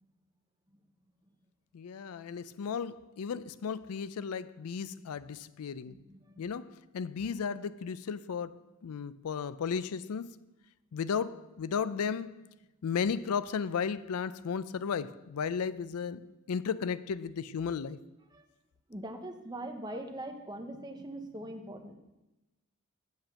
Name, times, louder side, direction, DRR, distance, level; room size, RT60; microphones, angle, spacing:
voice 1, 1.7-5.9 6.4-6.6 6.9-10.3 10.9-12.3 12.8-16.2 16.5-18.0, left 6 dB, 90° left, 16 dB, 0.4 m, -34 dB
voice 2, 5.9-6.5 18.3-18.4 18.9-22.0, right 1 dB, 20° right, 5 dB, 0.9 m, -42 dB
8.0 x 5.2 x 7.1 m, 1.0 s
head